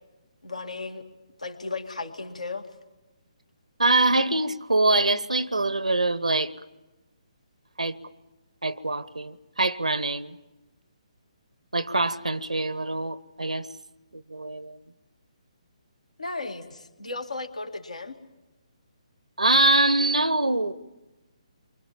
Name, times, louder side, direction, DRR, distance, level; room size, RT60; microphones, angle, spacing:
voice 1, 0.4-1.1 1.4-2.7 16.2-18.2, left 3 dB, 85° left, 2.3 m, -35 dB
voice 2, 3.8-6.5 7.8-8.0 8.6-10.4 11.7-13.7 14.1-14.8 19.4-20.7, right 2 dB, 85° right, 1.0 m, -24 dB
28.0 x 24.0 x 7.3 m
figure-of-eight pair, 140°, 4 cm